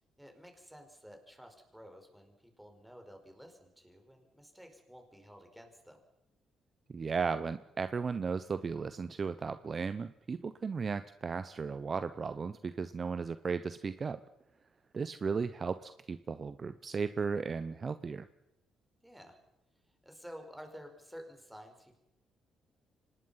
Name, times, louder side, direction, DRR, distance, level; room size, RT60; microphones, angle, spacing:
voice 1, 0.2-6.0 19.0-19.4 20.0-22.0, equal, 5° right, 4 dB, 4.8 m, -52 dB
voice 2, 6.9-14.2 14.9-18.3, right 5 dB, 40° right, 13 dB, 0.8 m, -35 dB
25.0 x 19.5 x 5.7 m, 0.88 s
cardioid pair, 90°, 0 cm